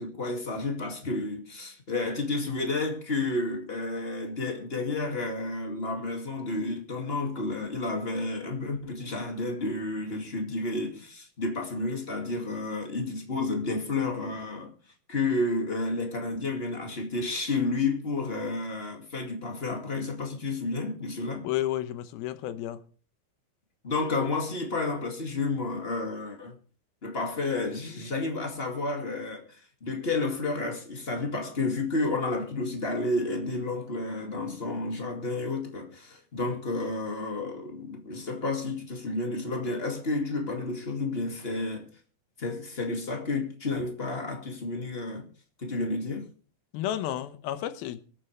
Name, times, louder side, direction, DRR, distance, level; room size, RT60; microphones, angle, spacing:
voice 1, 0.0-14.7 15.1-21.5 23.8-26.5 27.0-41.9 42.4-45.3 45.6-46.3, left 3 dB, 25° left, 1.5 m, -31 dB
voice 2, 21.4-22.8 46.7-48.0, left 12 dB, 80° left, 2.7 m, -31 dB
24.5 x 8.8 x 3.3 m
omnidirectional pair, 4.5 m